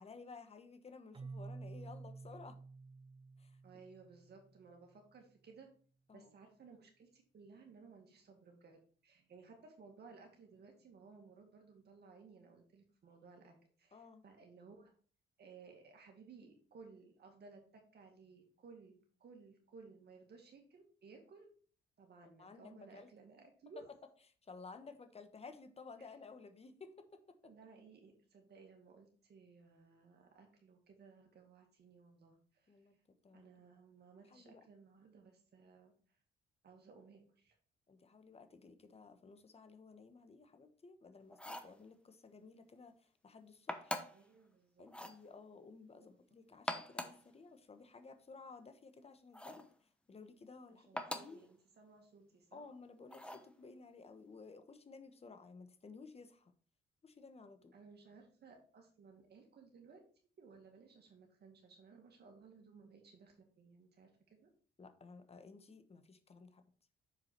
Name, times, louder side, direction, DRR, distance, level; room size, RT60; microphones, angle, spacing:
voice 1, 0.0-2.6 3.4-3.6 6.1-6.3 13.9-14.2 22.4-23.1 24.4-27.5 32.7-32.9 33.2-33.5 34.3-34.6 37.9-44.0 44.8-51.4 52.5-56.5 57.0-57.7 64.8-66.6, left 4 dB, 30° left, 9 dB, 1.1 m, -55 dB
Keyboard (musical), 1.1-4.8, right 3 dB, 25° right, 0.6 m, -51 dB
voice 2, 3.6-5.7 6.1-14.9 15.4-21.5 22.0-23.9 26.0-26.1 27.4-33.0 33.3-36.2 36.6-37.6 44.0-44.9 45.9-46.2 50.7-52.7 57.7-60.0 60.4-64.5, right 4 dB, 55° right, 3 dB, 2.1 m, -59 dB
sound 1, 41.3-41.8 43.7-44.3 44.9-45.2 46.5-47.3 49.3-49.7 51.0-51.4 53.1-53.5, left 1 dB, 5° left, 0.9 m, -43 dB
6.8 x 4.8 x 4.5 m, 0.43 s
cardioid pair, 90°, 20 cm